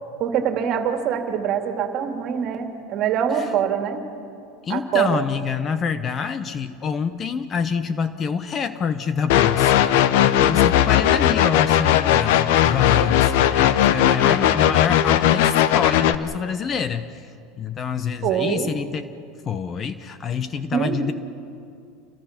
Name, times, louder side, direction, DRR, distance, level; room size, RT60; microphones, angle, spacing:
voice 1, 0.2-4.0 4.7-5.2 18.2-18.7 20.7-21.1, right 8 dB, 45° right, 4 dB, 2.4 m, -24 dB
voice 2, 4.6-17.1 17.6-19.1 19.5-21.1, left 6 dB, 30° left, 12 dB, 0.9 m, -26 dB
sound 1, 9.3-16.1, left 11 dB, 70° left, 0.8 m, -18 dB
28.5 x 21.5 x 5.9 m, 2.5 s
supercardioid pair, 125°, 0 cm